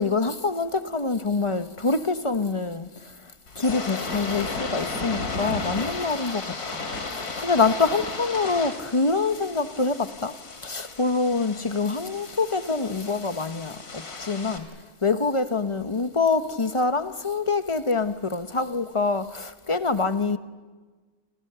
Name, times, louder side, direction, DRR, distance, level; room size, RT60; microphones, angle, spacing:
voice 1, 0.0-3.2 3.6-6.8 7.1-10.3 10.6-14.7 15.0-20.4, left 4 dB, 25° left, 0.8 m, -25 dB
sound 1, 3.5-14.6, left 3 dB, 75° left, 3.1 m, -34 dB
29.5 x 27.0 x 6.8 m
omnidirectional pair, 1.7 m